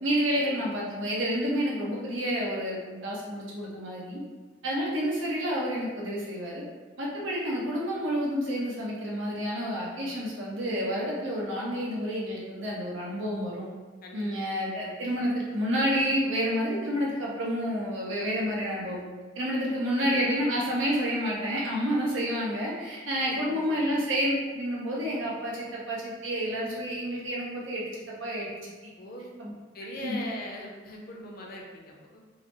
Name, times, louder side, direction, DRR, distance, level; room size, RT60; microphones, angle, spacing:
voice 1, 0.0-4.2 4.6-6.6 7.0-13.7 14.1-19.0 19.3-28.9 29.4-29.5 30.0-30.2, equal, 80° right, -4 dB, 0.8 m, -29 dB
voice 2, 23.2-23.6 29.0-29.3 29.7-32.2, left 1 dB, 50° left, 0 dB, 0.5 m, -41 dB
3.7 x 2.0 x 3.1 m, 1.4 s
head